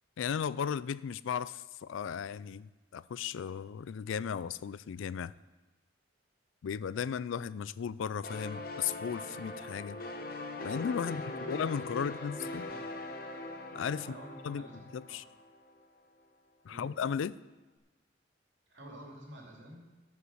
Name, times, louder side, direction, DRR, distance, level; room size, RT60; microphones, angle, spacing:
voice 1, 0.2-5.3 6.6-10.0 10.6-11.2 11.5-12.7 13.7-14.2 14.4-14.7 14.9-15.2 16.6-17.4, left 7 dB, 80° left, 18 dB, 0.3 m, -35 dB
sound 1, 8.2-15.7, left 2 dB, 45° left, 1.0 m, -42 dB
voice 2, 11.0-12.9 13.9-15.2 16.7-16.9 18.7-19.8, equal, 65° right, -1 dB, 2.7 m, -49 dB
14.0 x 5.8 x 6.3 m, 1.2 s
head